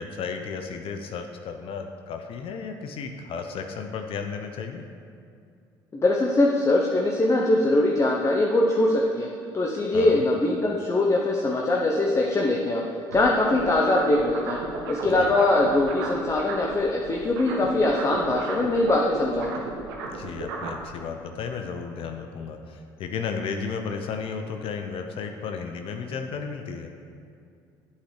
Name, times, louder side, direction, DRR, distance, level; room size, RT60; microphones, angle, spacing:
voice 1, 0.0-4.8 9.9-10.2 15.1-15.3 20.1-26.9, left 5 dB, 55° left, 5 dB, 0.6 m, -34 dB
voice 2, 5.9-9.3 9.5-12.8 13.1-14.6 14.9-19.7, left 2 dB, 25° left, 0 dB, 0.8 m, -22 dB
sound 1, 13.1-16.8 17.0-20.8, right 4 dB, 85° right, 0.9 m, -34 dB
8.2 x 8.1 x 3.3 m, 2.4 s
hypercardioid pair, 65°, 11 cm